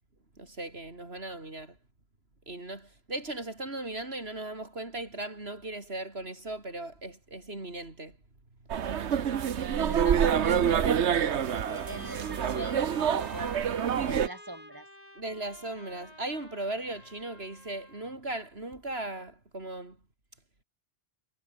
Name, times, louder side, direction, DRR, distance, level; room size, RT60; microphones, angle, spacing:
voice 1, 0.4-1.8 2.5-8.2 15.2-20.0, right 2 dB, 65° right, 4.4 m, -38 dB
sound 1, 8.7-14.3, right 8 dB, 80° right, 1.3 m, -27 dB
Trumpet, 9.6-18.2, left 1 dB, 35° left, 7.4 m, -51 dB
voice 2, 9.7-11.2 11.5-14.9, right 1 dB, 20° right, 5.1 m, -41 dB
omnidirectional pair, 1.1 m